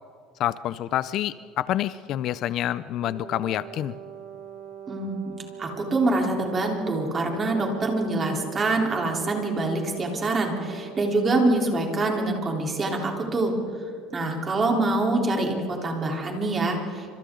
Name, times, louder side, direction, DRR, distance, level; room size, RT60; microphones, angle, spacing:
voice 1, 0.4-3.9, left 12 dB, 50° left, 16 dB, 0.5 m, -27 dB
Brass instrument, 3.0-11.7, right 9 dB, 50° right, 3.9 m, -42 dB
voice 2, 4.9-13.5 14.1-17.1, right 2 dB, 25° right, 1 dB, 3.7 m, -25 dB
28.5 x 26.5 x 3.9 m, 2.4 s
cardioid pair, 140°, 0 cm